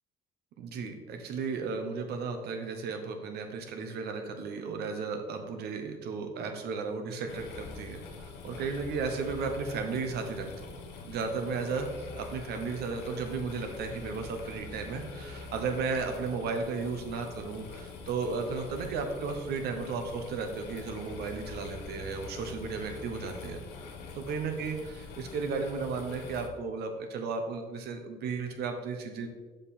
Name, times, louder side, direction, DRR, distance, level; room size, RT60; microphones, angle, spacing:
voice 1, 0.6-11.9 12.2-23.6 24.1-24.8 25.2-29.3, right 4 dB, 75° right, 5 dB, 1.2 m, -34 dB
sound 1, 7.3-26.5, left 4 dB, 85° left, 1.2 m, -44 dB
6.8 x 5.7 x 4.3 m, 1.4 s
cardioid pair, 110°, 17 cm